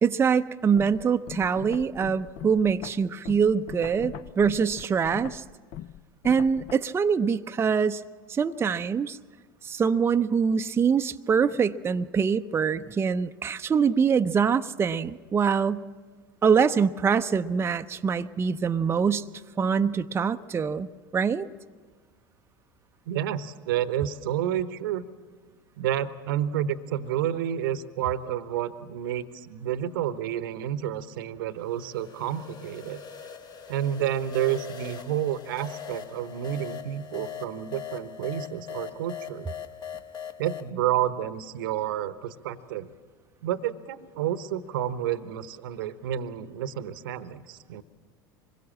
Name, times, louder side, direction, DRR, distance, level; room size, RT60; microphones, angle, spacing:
voice 1, 0.0-5.4 6.2-8.0 8.3-9.2 9.6-15.9 16.4-19.3 19.6-21.5, right 6 dB, 20° right, 8 dB, 0.6 m, -24 dB
sound 1, 0.8-6.7, left 11 dB, 50° left, 0.8 m, -41 dB
voice 2, 23.1-25.0 25.8-33.0 33.7-39.5 40.4-42.9 43.4-47.8, right 11 dB, 70° right, 14 dB, 1.0 m, -30 dB
sound 2, 31.6-40.7, left 8 dB, 35° left, 1.2 m, -41 dB
25.0 x 21.5 x 7.4 m, 1.5 s
figure-of-eight pair, 80°, 12 cm